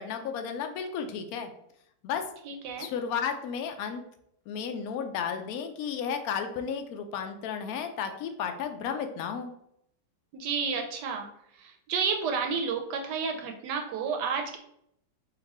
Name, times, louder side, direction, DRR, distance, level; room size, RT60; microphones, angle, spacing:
voice 1, 0.0-1.5 2.0-2.2 2.8-4.0 4.5-9.5, left 7 dB, 75° left, 6 dB, 0.8 m, -33 dB
voice 2, 2.5-2.9 10.3-11.3 11.6-14.6, right 5 dB, 75° right, 4 dB, 1.1 m, -31 dB
3.9 x 2.6 x 4.1 m, 0.74 s
omnidirectional pair, 2.1 m